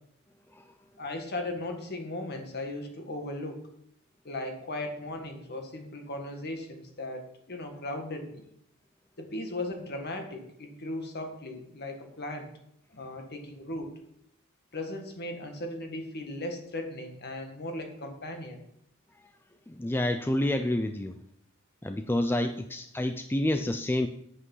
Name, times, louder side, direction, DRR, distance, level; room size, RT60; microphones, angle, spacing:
voice 1, 1.0-3.7 4.2-8.4 9.2-12.5 12.9-14.0 14.7-18.6, left 1 dB, 50° left, 4 dB, 1.8 m, -37 dB
voice 2, 19.7-21.2 21.8-24.1, left 1 dB, 10° left, 7 dB, 0.4 m, -28 dB
8.4 x 8.3 x 5.5 m, 0.74 s
head